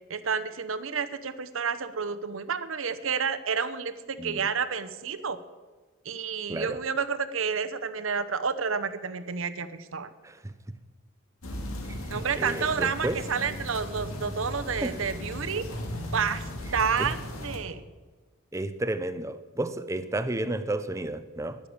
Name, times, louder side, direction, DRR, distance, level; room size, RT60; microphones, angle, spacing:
voice 1, 0.1-5.4 6.0-10.1 12.1-15.7 16.1-16.4 16.7-17.8, right 6 dB, 70° right, 0.8 m, -30 dB
voice 2, 6.5-6.8 10.2-10.5 12.1-13.2 14.8-15.0 17.0-17.1 18.5-21.6, right 1 dB, 15° right, 0.5 m, -32 dB
sound 1, 11.4-17.6, left 1 dB, 75° left, 2.4 m, -37 dB
12.0 x 10.5 x 7.1 m
head